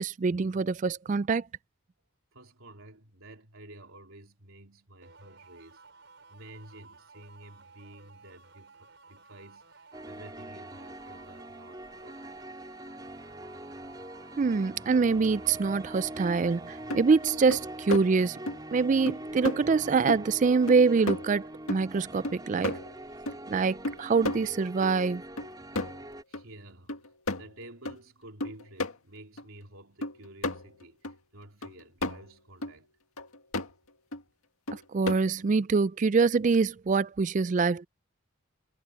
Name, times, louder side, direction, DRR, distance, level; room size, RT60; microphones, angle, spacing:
voice 1, 0.0-1.4 14.4-18.4 18.7-22.8 23.5-25.2 34.7-37.9, right 4 dB, 35° right, 0.3 m, -25 dB
voice 2, 2.3-5.8 6.3-12.5 26.3-32.9, right 1 dB, 75° right, 3.3 m, -51 dB
sound 1, 5.0-19.6, right 4 dB, 55° right, 5.8 m, -55 dB
sound 2, 9.9-26.2, right 1 dB, 20° right, 4.5 m, -43 dB
sound 3, 16.5-16.6 16.9-17.1 17.5-18.1 18.5-18.6 19.1-19.2 19.4-19.6 20.1-20.4 20.7-21.4 21.7-23.4 23.8-25.0 25.4-26.1 26.3-26.4 26.9-28.0 28.4-28.9 29.4-29.5 30.0-31.2 31.6-32.3 32.6-32.7 33.2-33.7 34.1-34.2 34.7-35.4, left 2 dB, 85° left, 2.0 m, -34 dB
head